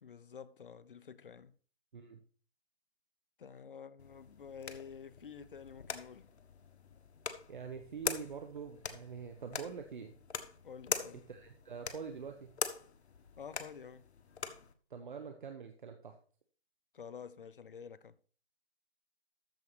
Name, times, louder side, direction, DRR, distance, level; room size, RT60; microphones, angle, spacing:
voice 1, 0.0-1.6 3.4-6.3 10.6-11.2 13.4-14.1 16.9-18.2, left 7 dB, 55° left, 0.8 m, -49 dB
sound 1, 4.0-14.7, left 6 dB, 85° left, 1.5 m, -43 dB
voice 2, 7.5-10.2 11.3-12.5 14.9-16.1, right 6 dB, 50° right, 1.2 m, -45 dB
13.5 x 4.7 x 5.7 m
hypercardioid pair, 175°, 32 cm